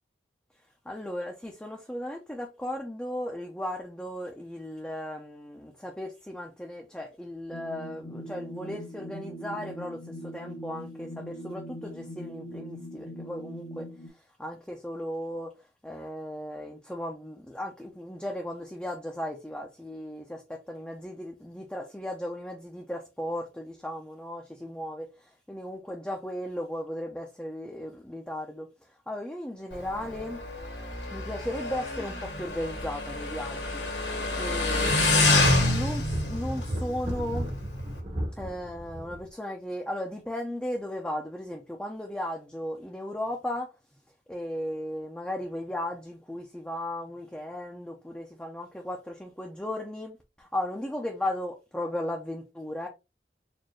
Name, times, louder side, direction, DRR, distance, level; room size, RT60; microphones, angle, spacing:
voice 1, 0.9-13.9 14.4-15.5 15.8-28.7 29.1-30.4 31.1-33.8 34.3-34.9 35.6-37.5 38.4-43.7 44.3-52.9, left 1 dB, 5° left, 0.5 m, -36 dB
sound 1, 7.5-14.1, equal, 45° left, 0.8 m, -41 dB
Motorcycle, 29.7-38.0, left 2 dB, 75° left, 1.7 m, -28 dB
sound 2, 30.6-30.8 31.1-31.2 32.1-33.6 33.9-34.0 34.6-39.3, equal, 35° right, 0.9 m, -38 dB
4.3 x 2.5 x 3.0 m
head